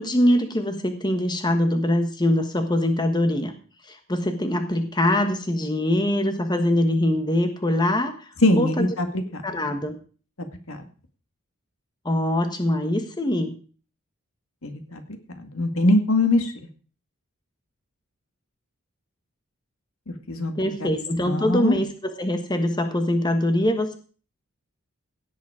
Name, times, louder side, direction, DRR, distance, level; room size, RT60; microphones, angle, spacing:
voice 1, 0.0-3.5 3.9-8.3 8.6-8.9 9.4-10.0 12.0-13.5 20.5-24.0, left 1 dB, 20° left, 6 dB, 1.3 m, -23 dB
voice 2, 8.4-9.4 10.7-10.8 14.6-15.0 15.4-16.5 20.1-20.5 20.8-20.9 21.2-21.8, left 2 dB, 75° left, 6 dB, 2.1 m, -22 dB
16.5 x 8.4 x 5.0 m, 0.40 s
head